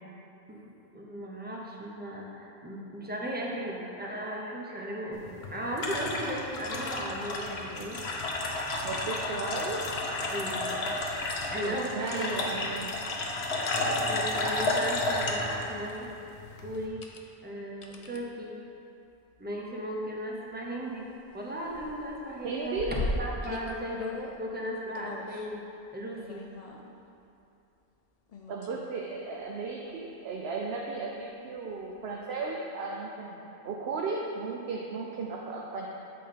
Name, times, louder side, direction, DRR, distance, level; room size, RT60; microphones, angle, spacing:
voice 1, 0.9-8.0 10.3-10.6 11.5-12.3 14.0-16.1 16.6-17.0 17.4-18.6 19.4-21.0 21.3-25.6 25.9-26.4, equal, 10° right, -3 dB, 0.6 m, -36 dB
sound 1, 5.1-16.9, left 2 dB, 70° left, 1.0 m, -32 dB
voice 2, 8.8-9.8 11.6-12.9 22.4-22.9 28.5-35.9, right 4 dB, 65° right, -1 dB, 0.8 m, -35 dB
sound 2, 15.9-16.1 16.8-17.2 17.8-18.2 19.4-19.6 20.1-20.2 20.4-21.4 21.7-24.4 25.0-25.5 26.2-27.0 28.3-28.8 29.4-29.5 31.8-31.9, left 2 dB, 45° left, 0.5 m, -38 dB
7.5 x 3.9 x 5.1 m, 2.7 s
omnidirectional pair, 1.2 m